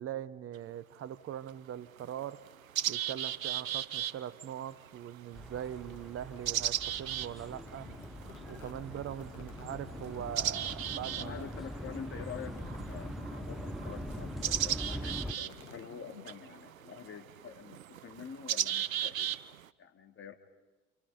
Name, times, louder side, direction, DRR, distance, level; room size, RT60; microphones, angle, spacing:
voice 1, 0.0-2.5 2.9-7.9 8.5-11.5, right 10 dB, 35° right, 16 dB, 1.1 m, -41 dB
sound 1, 0.5-0.6 1.5-1.6 2.0-19.7, right 11 dB, 80° right, 0.7 m, -37 dB
sound 2, 5.3-15.3, equal, ahead, 0.8 m, -43 dB
sound 3, 7.5-16.5, left 9 dB, 80° left, 1.5 m, -52 dB
voice 2, 11.2-20.3, left 7 dB, 30° left, 5 dB, 2.8 m, -47 dB
28.0 x 28.0 x 5.2 m, 1.2 s
figure-of-eight pair, 70°, 40 cm